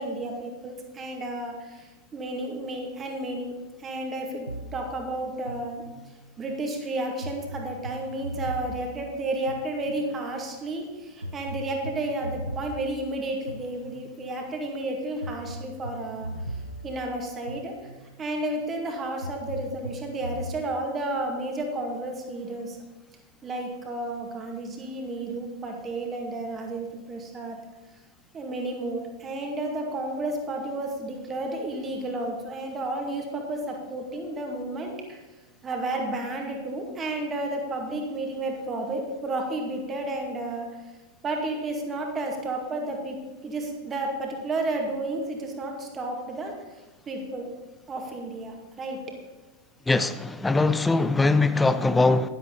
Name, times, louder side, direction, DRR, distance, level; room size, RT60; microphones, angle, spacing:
voice 1, 0.0-3.5 3.8-5.8 6.4-16.3 16.8-17.7 18.2-22.8 23.4-27.6 28.3-35.2 35.6-40.7 41.2-43.2 43.4-46.5 47.1-47.5 47.9-49.0, right 2 dB, 20° right, 2.2 m, -32 dB
sound 1, 4.5-6.3 7.2-10.3 11.2-14.3 15.2-18.3 19.2-20.6, right 1 dB, 85° right, 0.8 m, -39 dB
voice 2, 49.9-52.3, left 3 dB, 10° left, 0.5 m, -21 dB
11.0 x 11.0 x 4.0 m
figure-of-eight pair, 90°, 0 cm